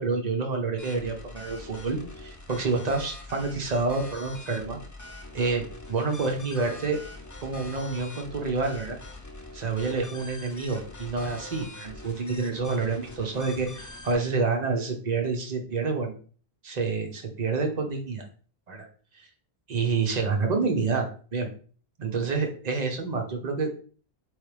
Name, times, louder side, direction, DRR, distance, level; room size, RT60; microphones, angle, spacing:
voice 1, 0.0-4.8 5.3-5.6 5.9-7.0 7.4-9.0 9.5-16.1 16.6-18.2 18.7-18.9 19.7-21.5 22.0-23.7, right 4 dB, 45° right, 3 dB, 0.9 m, -28 dB
sound 1, 0.8-14.1, left 2 dB, 25° left, 0.4 m, -43 dB
3.5 x 3.2 x 3.2 m, 0.41 s
omnidirectional pair, 1.1 m